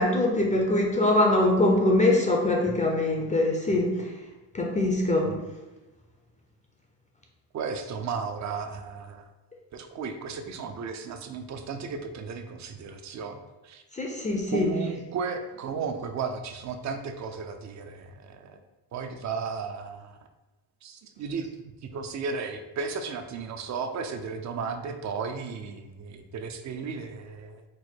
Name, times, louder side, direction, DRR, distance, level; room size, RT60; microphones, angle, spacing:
voice 1, 0.0-4.1 4.5-5.3 13.9-14.7, left 2 dB, 20° left, 0 dB, 0.5 m, -23 dB
voice 2, 7.5-9.3 9.7-13.8 14.5-18.6 18.9-20.2 20.8-21.5 21.9-27.6, right 5 dB, 40° right, 7 dB, 0.5 m, -34 dB
4.6 x 2.2 x 4.3 m, 1.1 s
cardioid pair, 130°, 43 cm